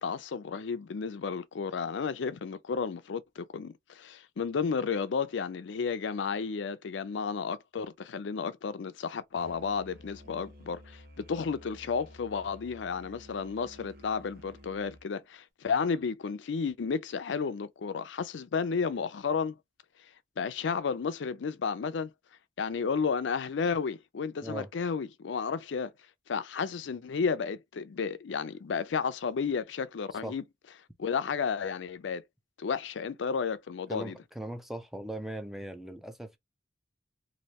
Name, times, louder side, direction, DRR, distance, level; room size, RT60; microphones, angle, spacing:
voice 1, 0.0-19.6 20.4-22.1 22.6-25.9 26.3-30.4 31.0-32.2 32.6-34.2, left 5 dB, 80° left, 0.4 m, -32 dB
Musical instrument, 9.3-15.0, left 1 dB, 55° right, 1.0 m, -52 dB
voice 2, 33.9-36.4, right 1 dB, ahead, 0.5 m, -39 dB
3.1 x 2.6 x 2.8 m
head